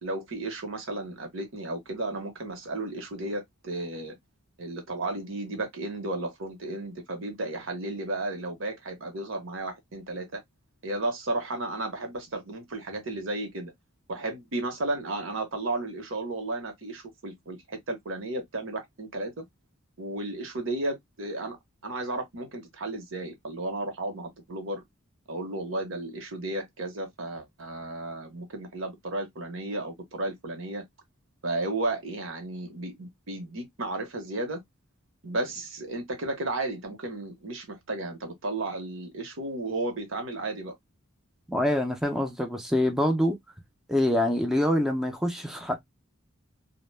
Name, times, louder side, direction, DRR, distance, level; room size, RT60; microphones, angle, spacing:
voice 1, 0.0-4.1 4.6-10.4 10.8-13.7 14.1-19.5 20.0-21.6 21.8-24.8 25.3-30.8 31.4-34.6 35.2-40.7, right 2 dB, 70° right, 0.9 m, -33 dB
voice 2, 41.5-43.4 43.9-45.8, left 1 dB, ahead, 0.4 m, -25 dB
2.1 x 2.0 x 3.1 m
head